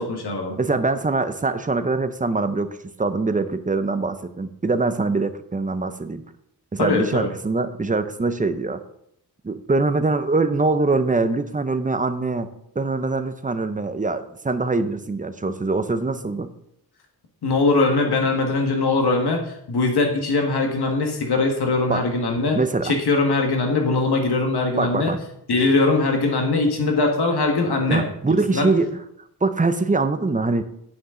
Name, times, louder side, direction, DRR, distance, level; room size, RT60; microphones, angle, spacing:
voice 1, 0.0-0.5 6.8-7.3 17.4-22.6 22.8-25.1 25.5-28.0 28.5-28.7, left 3 dB, 75° left, 2 dB, 1.7 m, -21 dB
voice 2, 0.6-6.2 6.7-8.8 9.4-12.5 12.8-16.5 21.9-22.0 22.5-22.9 24.8-25.2 27.9-29.0 29.4-30.6, right 3 dB, 20° right, 10 dB, 0.6 m, -23 dB
9.5 x 8.7 x 3.8 m, 0.75 s
wide cardioid pair, 135°, 39 cm